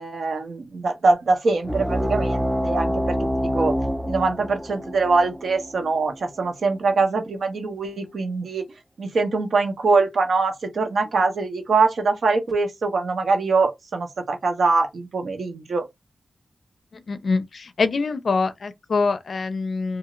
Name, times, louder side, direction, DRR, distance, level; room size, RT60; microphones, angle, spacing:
voice 1, 0.0-3.8 4.0-8.6 9.0-15.8, right 3 dB, 75° right, 0.8 m, -23 dB
sound 1, 1.6-6.7, equal, 5° right, 0.5 m, -26 dB
voice 2, 16.9-20.0, left 4 dB, 65° left, 0.4 m, -24 dB
2.6 x 2.4 x 3.0 m
wide cardioid pair, 120°, 0 cm